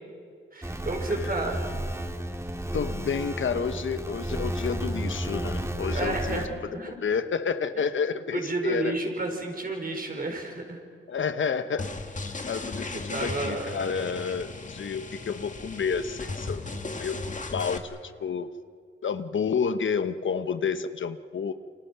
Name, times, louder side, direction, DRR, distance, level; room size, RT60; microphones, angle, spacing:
voice 1, 0.5-1.7 5.9-7.0 8.3-10.8 12.3-12.6 12.9-13.8, right 2 dB, 45° right, 3 dB, 5.5 m, -31 dB
sound 1, 0.6-6.5, right 1 dB, 15° right, 2.1 m, -32 dB
voice 2, 2.7-8.9 11.1-11.9 12.5-16.6 17.0-17.2 17.5-18.5 19.0-21.5, left 6 dB, 70° left, 11 dB, 1.1 m, -30 dB
sound 2, 11.8-17.8, left 3 dB, 35° left, 2.1 m, -36 dB
28.5 x 26.0 x 6.0 m, 2.3 s
cardioid pair, 65°, 21 cm